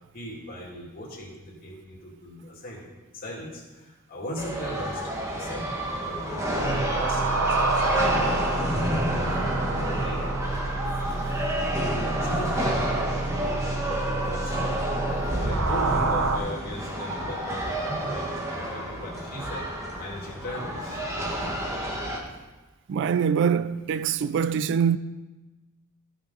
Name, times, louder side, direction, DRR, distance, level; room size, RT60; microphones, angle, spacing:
voice 1, 0.1-2.9 3.1-5.0 5.3-5.7 6.0-8.8 9.1-10.2 12.2-14.9 15.2-19.7 20.0-21.0, equal, 45° left, 2.6 m, -38 dB
sound 1, 4.4-22.2, equal, 15° right, 1.3 m, -29 dB
sound 2, 6.5-16.4, right 3 dB, 80° right, 0.9 m, -29 dB
voice 2, 22.9-25.0, right 7 dB, 55° right, 0.3 m, -24 dB
14.0 x 6.2 x 3.9 m
head